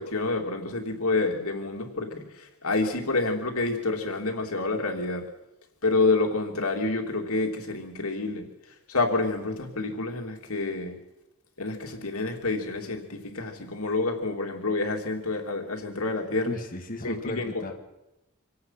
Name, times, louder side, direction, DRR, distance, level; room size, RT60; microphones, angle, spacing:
voice 1, 0.0-5.2 5.8-8.5 8.9-11.0 11.6-16.5 17.0-17.6, left 3 dB, 85° left, 3 dB, 3.0 m, -28 dB
voice 2, 16.5-17.7, left 1 dB, 40° left, 1 dB, 2.0 m, -34 dB
25.5 x 17.0 x 5.9 m, 0.93 s
head